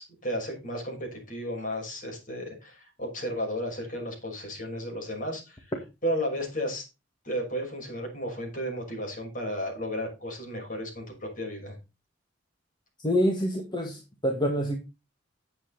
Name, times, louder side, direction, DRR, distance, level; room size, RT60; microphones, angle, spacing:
voice 1, 0.0-5.7 6.0-6.8 7.2-11.7, equal, 45° left, 6.2 m, -33 dB
voice 2, 13.0-14.8, equal, 25° left, 1.8 m, -26 dB
11.0 x 8.1 x 4.1 m
head